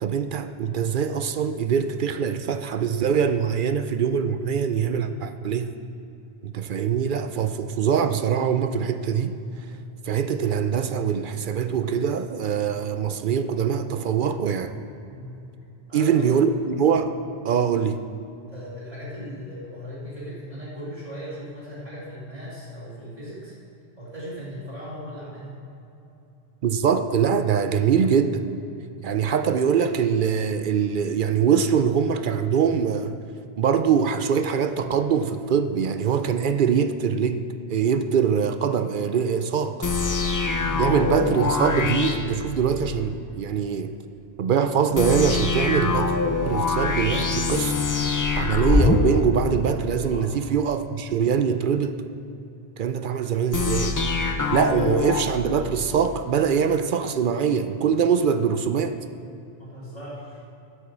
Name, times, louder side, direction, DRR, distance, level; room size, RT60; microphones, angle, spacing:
voice 1, 0.0-5.7 6.4-9.4 10.0-14.7 15.9-16.5 16.8-17.1 17.4-18.0 26.6-28.5 29.0-33.1 33.6-37.4 37.7-39.8 40.8-43.9 44.4-46.2 46.4-47.8 48.4-52.0 52.8-54.0 54.5-59.0, right 7 dB, 60° right, 9 dB, 0.6 m, -23 dB
voice 2, 15.1-15.4 15.9-16.7 18.5-23.6 24.0-25.5 40.6-41.0 50.0-50.3 59.6-60.4, equal, 30° right, -12 dB, 2.6 m, -38 dB
sound 1, 39.8-43.1 45.0-50.2 53.5-56.2, left 4 dB, 30° left, 0.3 m, -25 dB
11.5 x 7.9 x 6.0 m, 2.9 s
omnidirectional pair, 1.1 m